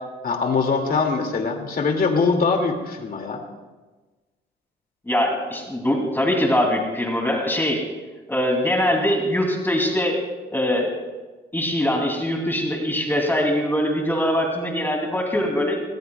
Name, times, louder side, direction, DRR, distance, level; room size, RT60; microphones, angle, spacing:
voice 1, 0.2-3.4, left 4 dB, 45° left, 3 dB, 2.5 m, -22 dB
voice 2, 5.1-7.8 8.3-10.2 10.5-10.9 11.5-15.8, left 1 dB, 10° left, 0 dB, 2.9 m, -22 dB
20.0 x 20.0 x 2.4 m, 1.3 s
cardioid pair, 90°, 20 cm